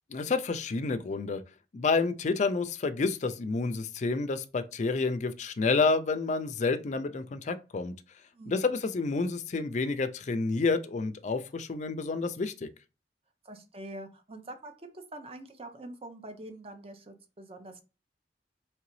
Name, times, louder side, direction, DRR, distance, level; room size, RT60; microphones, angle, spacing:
voice 1, 0.1-1.4 1.7-7.9 8.5-12.7, left 4 dB, 45° left, 0.4 m, -29 dB
voice 2, 8.3-8.7 13.4-17.8, right 1 dB, 35° right, 0.6 m, -45 dB
3.8 x 3.2 x 3.1 m
head